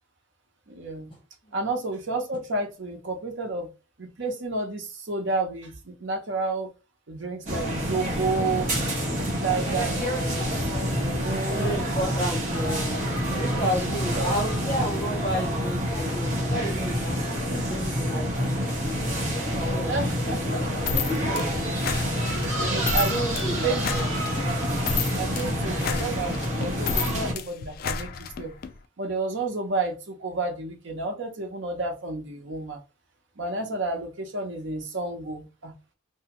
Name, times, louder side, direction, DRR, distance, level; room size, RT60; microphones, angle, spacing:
voice 1, 0.7-1.1 1.5-3.7 4.0-6.7 7.1-8.7 9.4-10.5 11.0-11.9 14.1-14.3 19.9-20.6 22.5-23.2 23.6-24.1 25.1-28.5 29.0-32.8 33.4-35.7, right 3 dB, 70° right, 3 dB, 0.8 m, -31 dB
sound 1, 7.5-27.3, equal, 40° right, 1.1 m, -27 dB
voice 2, 11.5-19.0 19.4-19.9 20.3-21.2 22.9-24.1, right 1 dB, 25° left, -4 dB, 0.7 m, -32 dB
sound 2, 20.9-28.7, left 5 dB, 50° left, 0.3 m, -31 dB
2.7 x 2.3 x 2.9 m, 0.30 s
head